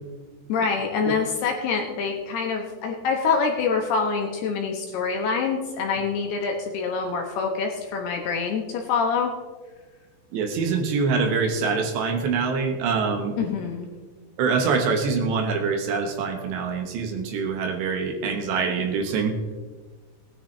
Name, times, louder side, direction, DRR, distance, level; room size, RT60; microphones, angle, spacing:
voice 1, 0.5-9.3 13.4-13.9, left 5 dB, 70° left, 1 dB, 2.6 m, -25 dB
voice 2, 10.3-13.4 14.4-19.4, right 5 dB, 70° right, 4 dB, 3.1 m, -24 dB
19.0 x 10.0 x 3.3 m, 1.3 s
omnidirectional pair, 5.6 m